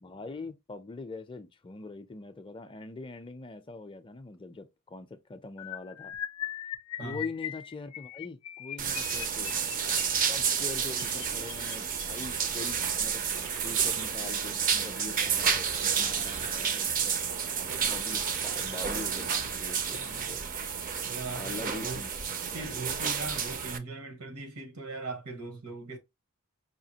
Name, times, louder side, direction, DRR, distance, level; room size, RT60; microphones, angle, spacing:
voice 1, 0.0-6.1 7.0-9.6 10.2-20.4 21.3-22.1 22.5-23.1, left 3 dB, 25° left, 0.4 m, -43 dB
sound 1, 5.6-12.8 13.5-13.8 14.0-14.3 14.5-14.7, left 11 dB, 85° left, 0.4 m, -41 dB
sound 2, 8.8-23.8, right 7 dB, 40° right, 0.5 m, -31 dB
sound 3, 13.1-20.6, right 7 dB, 65° right, 0.7 m, -41 dB
voice 2, 21.0-22.0 22.5-26.0, right 3 dB, 80° right, 1.5 m, -39 dB
5.0 x 2.6 x 2.8 m
head